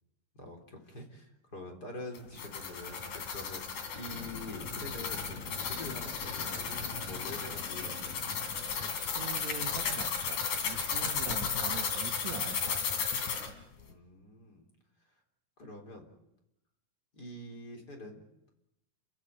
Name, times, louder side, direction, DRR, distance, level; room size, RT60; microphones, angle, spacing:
voice 1, 0.3-3.6 3.9-8.2 13.9-14.7 15.6-16.1 17.1-18.2, left 1 dB, 30° left, 2 dB, 4.1 m, -46 dB
sound 1, 2.1-13.5, left 6 dB, 65° left, 4.1 m, -35 dB
sound 2, 4.1-12.3 13.7-13.8, left 2 dB, 90° left, 4.1 m, -47 dB
voice 2, 8.8-13.1, right 7 dB, 60° right, 6 dB, 2.6 m, -43 dB
29.5 x 15.5 x 9.2 m, 0.88 s
omnidirectional pair, 3.7 m